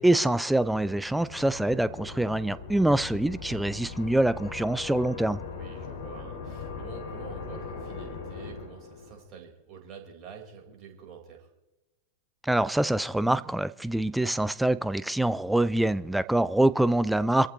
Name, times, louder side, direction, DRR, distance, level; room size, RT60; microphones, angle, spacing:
voice 1, 0.0-5.4 12.4-17.5, right 1 dB, 5° right, 0.5 m, -25 dB
sound 1, 0.7-9.2, left 5 dB, 60° left, 3.3 m, -40 dB
voice 2, 5.5-11.5, right 6 dB, 35° right, 4.5 m, -47 dB
26.5 x 14.5 x 3.1 m
figure-of-eight pair, 90°, 0 cm